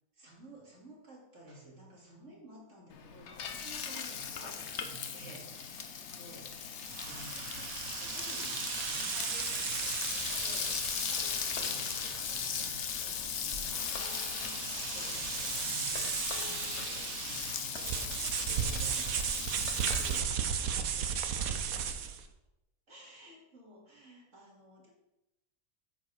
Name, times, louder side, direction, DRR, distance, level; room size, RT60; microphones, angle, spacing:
voice 1, 0.1-7.5 7.8-22.0 22.9-24.9, right 1 dB, 60° right, -3 dB, 2.9 m, -53 dB
Frying (food), 2.9-20.2, left 7 dB, 60° left, 1.1 m, -38 dB
sound 1, 6.9-22.3, right 8 dB, 80° right, 1.2 m, -36 dB
9.0 x 7.7 x 4.9 m, 0.93 s
omnidirectional pair, 1.5 m